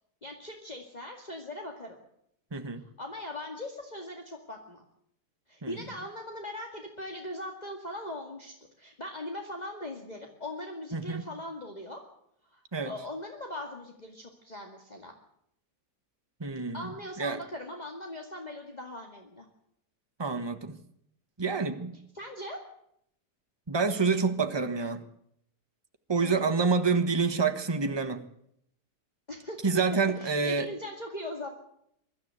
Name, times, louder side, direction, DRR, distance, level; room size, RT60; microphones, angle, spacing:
voice 1, 0.2-2.0 3.0-4.8 5.5-12.0 12.5-15.1 16.7-19.5 22.1-22.6 26.2-26.7 29.3-29.8 30.2-31.5, left 1 dB, 25° left, 2 dB, 2.3 m, -40 dB
voice 2, 2.5-2.8 5.6-5.7 10.9-11.3 12.7-12.9 16.4-16.9 17.2-17.4 20.2-20.8 21.4-22.0 23.7-25.0 26.1-28.2 29.6-30.7, right 4 dB, 15° right, 7 dB, 1.3 m, -27 dB
23.0 x 12.5 x 9.0 m, 0.74 s
omnidirectional pair, 1.7 m